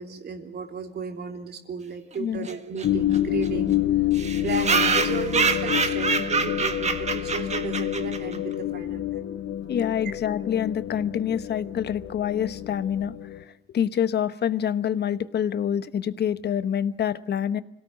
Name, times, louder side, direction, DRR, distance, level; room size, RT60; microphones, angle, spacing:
voice 1, 0.0-3.7 4.0-4.1 4.4-9.2, right 5 dB, 55° right, 4 dB, 3.4 m, -34 dB
sound 1, 2.4-2.5 2.8-2.9 3.1-3.2 3.4-3.5 4.1-8.4, right 5 dB, 35° right, 1.8 m, -26 dB
sound 2, 2.8-13.4, left 12 dB, 70° left, 1.4 m, -28 dB
voice 2, 9.7-13.1 13.7-17.6, left 9 dB, 55° left, 13 dB, 1.1 m, -26 dB
26.0 x 17.5 x 8.2 m, 0.88 s
cardioid pair, 90°, 20 cm